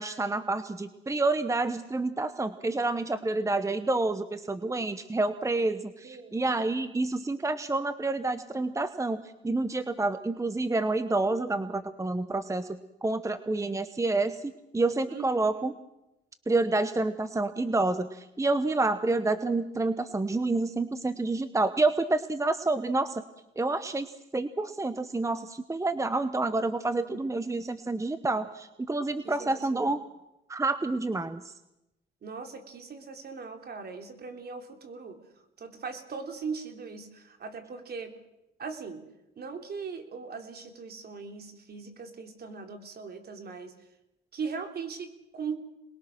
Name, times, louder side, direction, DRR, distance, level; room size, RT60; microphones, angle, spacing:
voice 1, 0.0-9.2 9.4-15.7 16.5-23.2 23.6-30.0 30.5-31.5, right 2 dB, 15° right, 12 dB, 1.0 m, -28 dB
voice 2, 6.0-6.4 15.1-15.7 27.0-27.4 29.2-30.0 32.2-35.2 35.6-38.2 38.6-39.1 39.4-43.7 44.3-45.6, right 5 dB, 55° right, 5 dB, 3.5 m, -40 dB
27.5 x 21.0 x 6.2 m, 0.89 s
cardioid pair, 90°, 20 cm